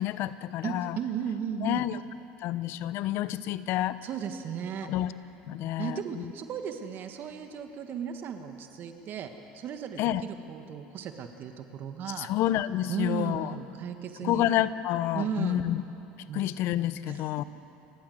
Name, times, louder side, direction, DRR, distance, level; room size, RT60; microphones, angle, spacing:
voice 1, 0.0-1.0 1.6-2.0 2.4-4.0 4.8-5.1 5.4-6.2 10.0-10.2 12.2-13.5 14.2-15.8 16.3-17.4, left 13 dB, 60° left, 15 dB, 0.8 m, -29 dB
voice 2, 0.6-1.8 4.0-4.9 5.8-12.3 12.9-14.5 15.1-15.6 16.3-16.5 17.1-17.2, right 8 dB, 50° right, 6 dB, 1.7 m, -35 dB
29.5 x 14.5 x 7.9 m, 2.9 s
supercardioid pair, 95°, 4 cm